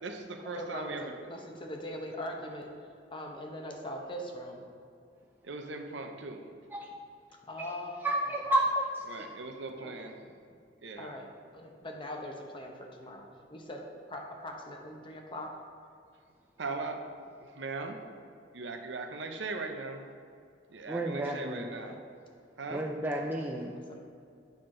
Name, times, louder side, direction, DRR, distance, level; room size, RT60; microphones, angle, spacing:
voice 1, 0.0-1.1 5.4-6.4 9.1-10.2 10.8-11.2 16.6-17.0 17.4-18.0 18.5-20.1 20.7-22.0 22.6-22.8, right 3 dB, 75° right, 4 dB, 0.7 m, -39 dB
voice 2, 0.5-2.7 3.1-4.6 7.5-8.3 9.8-10.1 11.0-11.3 11.5-15.5 19.2-19.3 21.7-22.0 23.9-24.0, left 1 dB, 30° left, 1 dB, 0.9 m, -41 dB
voice 3, 8.0-9.0 20.9-21.7 22.7-23.8, right 1 dB, 10° right, -1 dB, 0.5 m, -30 dB
8.6 x 5.8 x 3.8 m, 2.4 s
head